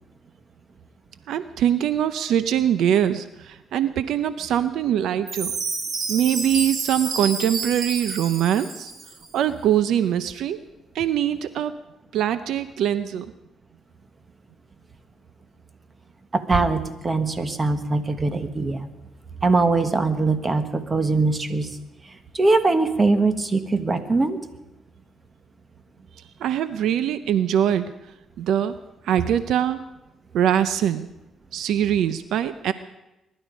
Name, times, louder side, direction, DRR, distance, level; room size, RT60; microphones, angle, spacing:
voice 1, 1.3-5.5 6.1-8.9 9.3-10.6 10.9-11.7 12.1-13.3 26.4-27.9 28.4-28.7 29.0-29.8 30.3-31.1 31.5-32.7, right 10 dB, 80° right, 13 dB, 0.6 m, -22 dB
Chime, 5.3-9.3, right 4 dB, 60° right, 3.1 m, -30 dB
voice 2, 16.3-18.9 19.4-21.7 22.3-24.4, right 3 dB, 25° right, 9 dB, 1.4 m, -22 dB
22.5 x 11.5 x 5.2 m, 0.94 s
cardioid pair, 90°, 0 cm